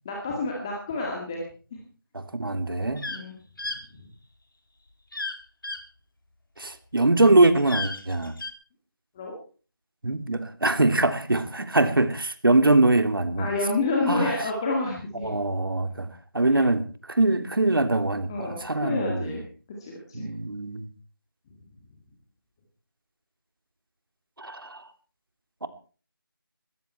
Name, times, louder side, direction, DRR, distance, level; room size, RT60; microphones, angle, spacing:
voice 1, 0.0-1.4 3.1-3.4 9.2-9.3 13.4-15.4 16.5-16.6 18.3-19.4 19.8-20.3, left 3 dB, 10° left, -1 dB, 2.1 m, -29 dB
voice 2, 2.1-3.1 6.6-8.3 10.0-13.5 14.1-14.3 15.2-16.1 16.3-16.8 17.1-19.3 20.1-20.9 24.4-24.8 25.6-25.7, right 2 dB, 75° right, 10 dB, 3.1 m, -23 dB
sound 1, 3.0-3.2 3.6-3.8 5.1-5.4 5.6-5.8 7.6-8.5, left 2 dB, 70° left, 3.7 m, -33 dB
20.5 x 15.0 x 4.5 m, 0.39 s
figure-of-eight pair, 175°, 12 cm